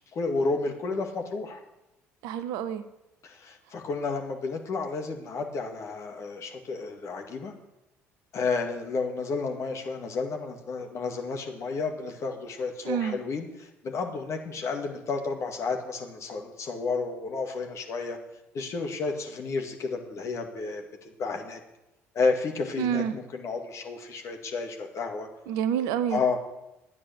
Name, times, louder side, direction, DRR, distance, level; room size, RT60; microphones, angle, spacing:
voice 1, 0.1-1.6 3.2-7.5 8.3-18.2 18.5-21.6 22.1-25.3 26.1-26.4, left 4 dB, 45° left, 3 dB, 2.2 m, -31 dB
voice 2, 2.2-2.8 12.8-13.2 22.8-23.1 25.5-26.2, right 9 dB, 60° right, 13 dB, 0.8 m, -28 dB
12.5 x 9.7 x 6.5 m, 0.93 s
figure-of-eight pair, 55°, 7 cm